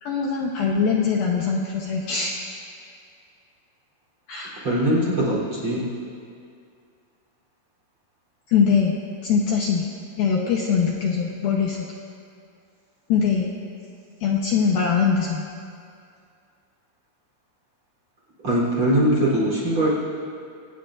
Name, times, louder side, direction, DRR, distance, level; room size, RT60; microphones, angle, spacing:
voice 1, 0.0-2.3 4.3-4.6 8.5-9.0 9.2-9.9 10.2-11.9 13.1-13.5 14.2-15.5, left 6 dB, 90° left, -1 dB, 2.1 m, -22 dB
voice 2, 4.6-5.9 18.4-19.9, right 1 dB, 30° right, -5 dB, 3.7 m, -21 dB
26.5 x 18.5 x 2.6 m, 2.4 s
omnidirectional pair, 5.8 m